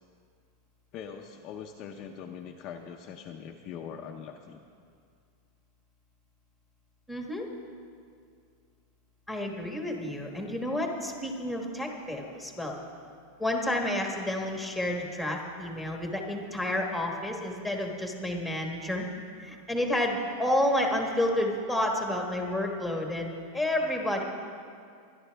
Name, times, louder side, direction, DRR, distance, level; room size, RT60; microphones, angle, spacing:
voice 1, 0.9-4.6, left 7 dB, 30° left, 2 dB, 0.7 m, -42 dB
voice 2, 7.1-7.5 9.3-12.7 13.4-19.1 19.4-24.2, left 1 dB, ahead, 1 dB, 1.3 m, -30 dB
24.0 x 11.0 x 3.4 m, 2.3 s
supercardioid pair, 170°, 0 cm